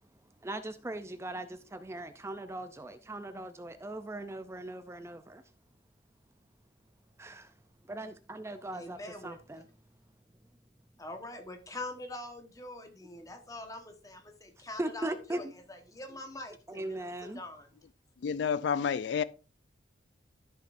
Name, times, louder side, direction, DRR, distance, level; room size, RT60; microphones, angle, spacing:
voice 1, 0.4-5.4 7.2-7.5 7.9-9.7 14.8-15.5 16.7-17.4, right 1 dB, 15° right, 0.4 m, -39 dB
voice 2, 8.7-9.4 11.0-17.7, left 2 dB, 20° left, 1.2 m, -44 dB
voice 3, 18.2-19.2, left 7 dB, 75° left, 0.3 m, -29 dB
13.0 x 5.8 x 2.6 m
head